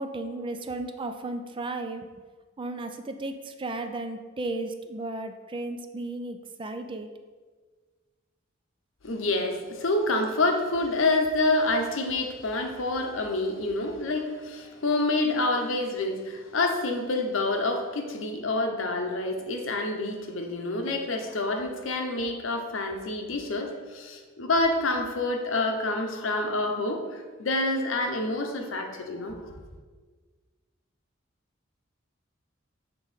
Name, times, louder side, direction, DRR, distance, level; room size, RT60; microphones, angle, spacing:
voice 1, 0.0-2.1 2.6-7.1, right 2 dB, 25° right, 7 dB, 0.4 m, -34 dB
voice 2, 9.0-29.5, left 2 dB, 75° left, 4 dB, 0.8 m, -27 dB
6.8 x 3.7 x 4.1 m, 1.4 s
head